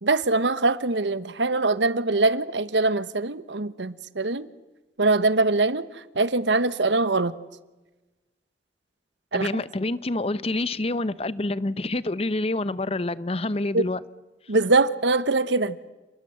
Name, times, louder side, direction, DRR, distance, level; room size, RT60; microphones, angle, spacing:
voice 1, 0.0-4.5 5.0-5.8 6.1-7.3 9.3-9.5 13.7-13.8 14.5-15.8, right 3 dB, 90° right, 1.2 m, -23 dB
voice 2, 9.3-14.0, left 2 dB, 35° left, 0.8 m, -27 dB
29.5 x 21.0 x 7.8 m
head